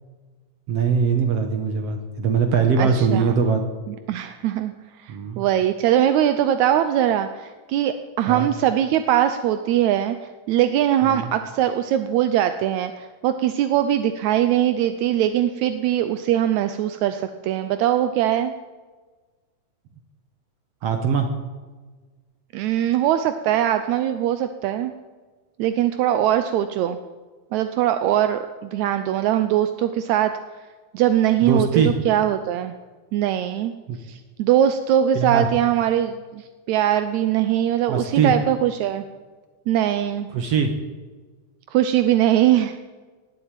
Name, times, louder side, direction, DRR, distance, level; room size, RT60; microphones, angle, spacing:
voice 1, 0.7-3.6 5.1-5.4 8.3-8.5 11.0-11.2 20.8-21.3 31.4-31.9 33.9-34.0 35.1-35.5 37.9-38.3 40.3-40.7, right 5 dB, 60° right, 6 dB, 1.8 m, -21 dB
voice 2, 2.8-3.3 3.9-4.7 5.0-10.2 10.5-18.5 22.5-24.9 25.6-27.0 27.5-30.3 30.9-32.7 33.1-33.7 34.1-39.0 39.7-40.3 41.7-42.8, right 11 dB, 80° right, 10 dB, 1.7 m, -21 dB
18.5 x 7.9 x 9.0 m, 1.4 s
omnidirectional pair, 3.9 m